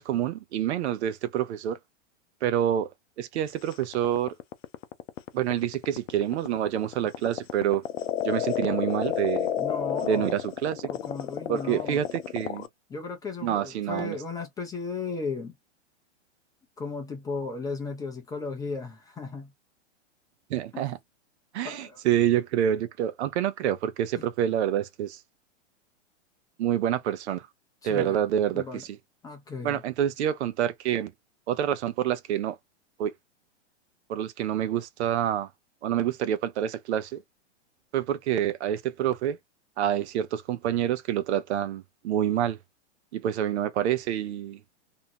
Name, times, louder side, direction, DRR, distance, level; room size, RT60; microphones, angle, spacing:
voice 1, 0.0-1.8 2.4-2.9 3.2-4.3 5.3-7.8 8.2-9.5 10.0-10.9 11.5-12.7 13.4-14.2 20.5-21.0 21.5-25.2 26.6-27.5 27.8-29.0 29.6-31.1 31.5-32.6 33.0-33.1 34.1-35.5 35.8-37.2 37.9-39.4 39.8-42.6 43.1-44.6, right 10 dB, 65° right, 0.6 m, -27 dB
sound 1, 3.7-12.7, left 11 dB, 90° left, 0.5 m, -31 dB
voice 2, 9.6-10.3 10.9-12.0 12.9-15.5 16.8-19.5 20.7-20.8 21.6-22.0 24.1-24.2 27.8-28.2 28.5-28.8 29.2-29.8, left 4 dB, 10° left, 0.5 m, -35 dB
2.7 x 2.1 x 2.8 m
hypercardioid pair, 135°, 36 cm